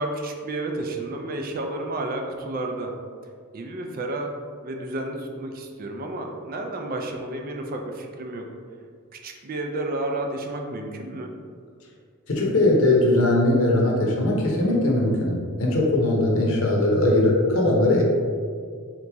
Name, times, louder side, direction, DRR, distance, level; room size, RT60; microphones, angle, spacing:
voice 1, 0.0-2.9 3.5-4.3 4.6-8.5 9.1-11.3, right 2 dB, 40° right, 3 dB, 0.4 m, -31 dB
voice 2, 12.3-18.0, left 1 dB, 65° left, -1 dB, 0.8 m, -20 dB
3.9 x 3.0 x 3.4 m, 2.1 s
head